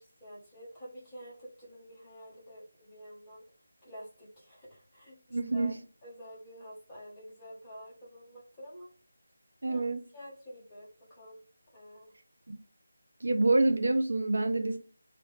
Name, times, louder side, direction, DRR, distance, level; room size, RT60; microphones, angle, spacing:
voice 1, 0.0-3.4 3.8-8.9 9.7-9.8 10.1-11.4 11.7-12.1, equal, 5° left, 0.8 m, -49 dB
voice 2, 5.3-5.8 9.6-10.0 12.5-12.6 13.2-14.8, right 2 dB, 65° right, 0.7 m, -27 dB
3.2 x 2.6 x 3.2 m
figure-of-eight pair, 180°, 0 cm